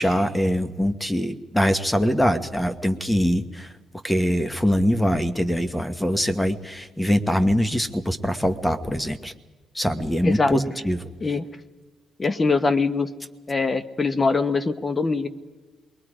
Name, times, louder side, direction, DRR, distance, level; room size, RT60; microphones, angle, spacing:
voice 1, 0.0-3.7 4.0-9.3 9.7-11.1, equal, 10° left, 10 dB, 1.3 m, -23 dB
voice 2, 10.2-10.5 11.2-11.5 12.2-13.1 13.5-15.3, left 4 dB, 30° left, 12 dB, 1.1 m, -22 dB
27.5 x 21.5 x 5.0 m, 1.3 s
cardioid pair, 90°, 0 cm